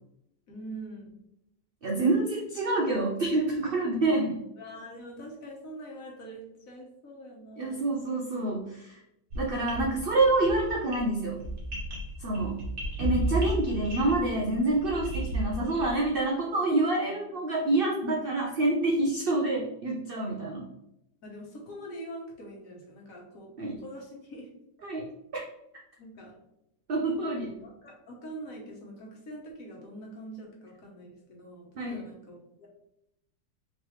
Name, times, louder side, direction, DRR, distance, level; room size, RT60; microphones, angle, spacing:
voice 1, 0.5-1.1 4.6-7.8 21.2-23.5 23.8-24.5 26.0-26.4 27.6-32.7, right 1 dB, 60° left, -1 dB, 1.4 m, -44 dB
voice 2, 1.8-4.4 7.6-9.0 9.4-11.4 12.2-12.6 13.0-20.7 23.6-23.8 24.8-25.1 25.3-25.4 26.9-27.5 31.8-32.0, right 2 dB, 85° right, -1 dB, 0.5 m, -27 dB
sound 1, 9.3-16.0, right 1 dB, 50° right, 1.3 m, -33 dB
3.8 x 3.1 x 3.1 m, 0.81 s
omnidirectional pair, 1.7 m